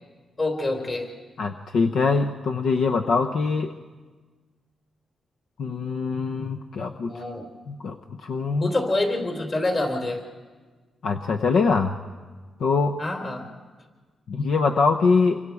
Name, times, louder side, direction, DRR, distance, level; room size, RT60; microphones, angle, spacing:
voice 1, 0.4-1.1 7.1-7.5 8.6-10.2 13.0-13.4, left 2 dB, 40° left, 2 dB, 3.8 m, -26 dB
voice 2, 1.4-3.7 5.6-7.2 7.7-8.0 8.2-8.7 11.0-12.0 12.6-13.0 14.3-15.4, left 4 dB, 75° left, 4 dB, 0.8 m, -23 dB
28.0 x 24.0 x 4.8 m, 1.4 s
cardioid pair, 110°, 0 cm